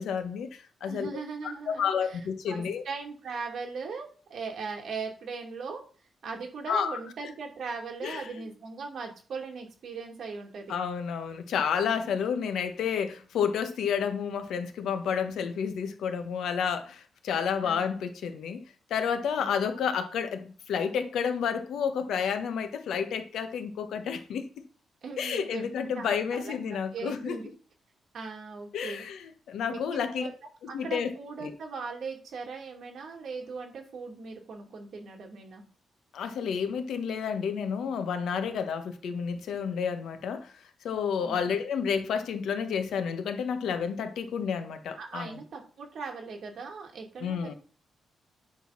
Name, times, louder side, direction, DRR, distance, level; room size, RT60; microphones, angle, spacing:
voice 1, 0.0-1.1 1.7-2.8 6.7-7.0 8.0-8.5 10.7-18.6 18.9-24.5 25.2-27.4 28.7-30.3 30.6-31.1 31.4-31.5 36.1-40.5 40.8-45.3 47.2-47.5, left 7 dB, 85° left, 1.3 m, -30 dB
voice 2, 0.8-5.8 6.2-10.7 17.6-17.8 19.4-19.8 25.0-27.5 28.1-29.1 29.7-30.3 30.7-35.6 41.2-41.4 45.0-47.5, right 4 dB, 55° right, 2.7 m, -39 dB
10.0 x 3.9 x 6.0 m
wide cardioid pair, 160°, 0 cm